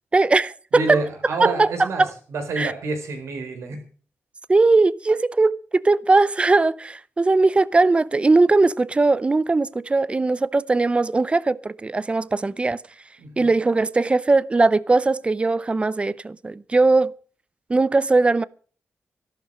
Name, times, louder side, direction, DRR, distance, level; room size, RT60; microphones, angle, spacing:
voice 1, 0.1-1.0 1.4-1.7 2.0-2.1 2.6-2.7 4.5-12.8 13.4-17.1 17.7-18.4, right 3 dB, 25° right, 0.6 m, -19 dB
voice 2, 0.7-3.8 13.2-13.5, right 3 dB, 90° right, 4.3 m, -28 dB
13.5 x 12.0 x 6.3 m
cardioid pair, 95°, 5 cm